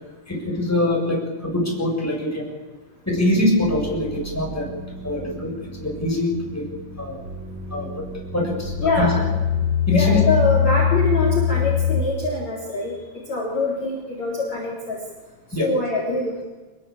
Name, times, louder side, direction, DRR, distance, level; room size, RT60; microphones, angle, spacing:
voice 1, 0.3-2.5 3.1-4.7 5.0-5.5 5.8-6.6 7.0-7.2 7.7-8.0 8.3-9.0 9.9-10.2 15.5-15.7, left 1 dB, 5° left, -1 dB, 7.1 m, -23 dB
sound 1, 3.6-12.0, left 7 dB, 35° right, 4.8 m, -25 dB
voice 2, 8.8-9.3 9.9-15.0 15.6-16.4, left 2 dB, 35° left, -2 dB, 4.9 m, -24 dB
26.5 x 21.5 x 8.8 m, 1.2 s
omnidirectional pair, 5.5 m